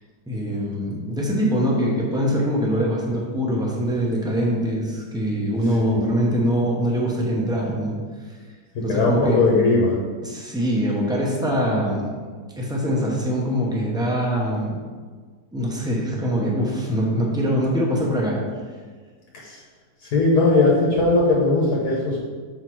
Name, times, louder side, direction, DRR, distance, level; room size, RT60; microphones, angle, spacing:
voice 1, 0.3-8.0 8.8-9.4 10.2-12.2 12.6-14.8 15.5-18.4, equal, 5° right, -3 dB, 0.8 m, -23 dB
voice 2, 8.7-9.9 19.4-19.6 20.1-22.2, left 3 dB, 65° left, -4 dB, 1.5 m, -19 dB
6.7 x 3.9 x 4.6 m, 1.5 s
omnidirectional pair, 1.8 m